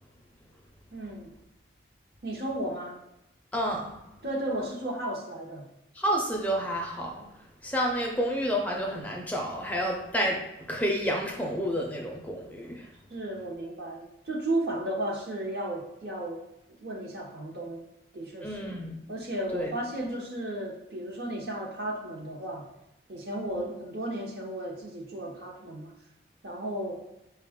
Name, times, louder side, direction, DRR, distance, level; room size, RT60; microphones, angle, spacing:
voice 1, 0.9-1.3 2.2-3.0 4.2-5.7 13.1-16.4 16.7-17.9 18.1-18.6 19.1-22.7 23.1-25.9 26.4-27.0, right 1 dB, 60° right, 0 dB, 0.8 m, -34 dB
voice 2, 3.5-3.9 5.9-7.3 7.6-12.9 18.4-19.0 19.5-19.7 23.5-23.6, equal, 10° left, 0 dB, 0.4 m, -30 dB
5.2 x 2.3 x 3.5 m, 0.90 s
head